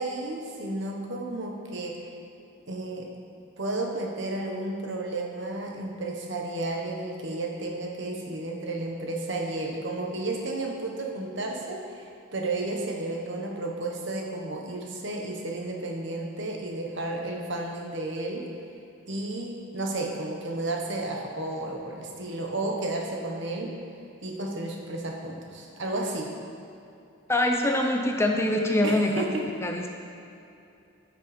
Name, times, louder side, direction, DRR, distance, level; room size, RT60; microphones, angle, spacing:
voice 1, 0.0-2.0 2.7-3.1 3.6-18.5 19.1-23.8 24.2-26.3 28.8-29.4, right 2 dB, 55° right, 0 dB, 1.3 m, -32 dB
voice 2, 27.3-29.2 29.6-29.9, left 1 dB, 10° left, 2 dB, 0.5 m, -24 dB
14.0 x 5.7 x 5.1 m, 2.7 s
head